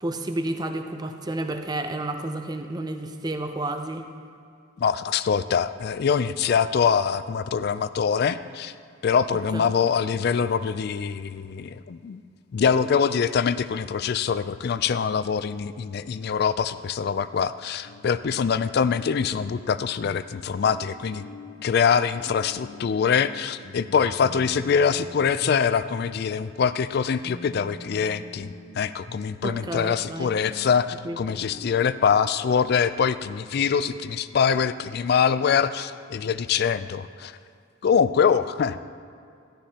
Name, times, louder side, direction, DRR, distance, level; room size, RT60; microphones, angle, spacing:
voice 1, 0.0-4.1 9.5-9.7 29.4-30.3 31.0-31.4, right 1 dB, 20° right, 6 dB, 0.6 m, -31 dB
voice 2, 4.8-8.7 9.0-12.2 12.5-21.2 21.6-37.3 37.8-38.8, left 6 dB, 50° left, 14 dB, 0.3 m, -24 dB
sound 1, 17.8-34.1, left 3 dB, 80° left, 0.9 m, -45 dB
13.5 x 11.5 x 2.8 m, 2.4 s
head